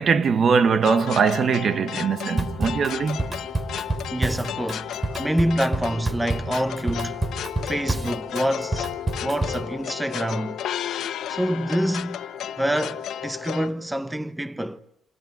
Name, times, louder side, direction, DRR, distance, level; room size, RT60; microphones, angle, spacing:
voice 1, 0.0-3.2 7.6-7.7, right 5 dB, 55° right, 1.4 m, -21 dB
sound 1, 0.8-13.7, left 10 dB, 75° left, 1.3 m, -33 dB
Drum kit / Drum, 2.4-9.7, right 2 dB, 25° right, 3.2 m, -28 dB
voice 2, 3.1-3.5 4.1-7.2 7.6-8.9 9.2-10.6 11.3-12.2 12.6-14.8, right 1 dB, 10° right, 1.0 m, -27 dB
28.5 x 18.5 x 9.4 m
cardioid pair, 90°, 0 cm